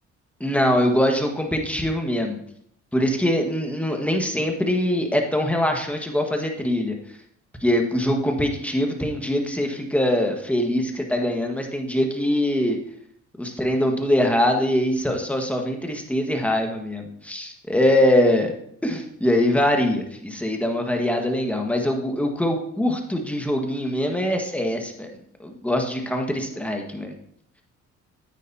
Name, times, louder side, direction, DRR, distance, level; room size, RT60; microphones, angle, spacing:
voice 1, 0.4-2.4 2.9-6.9 7.6-12.8 13.4-18.5 18.8-25.1 25.4-27.1, left 1 dB, 5° left, 2 dB, 1.6 m, -23 dB
9.2 x 9.1 x 2.8 m, 0.69 s
cardioid pair, 90°, 30 cm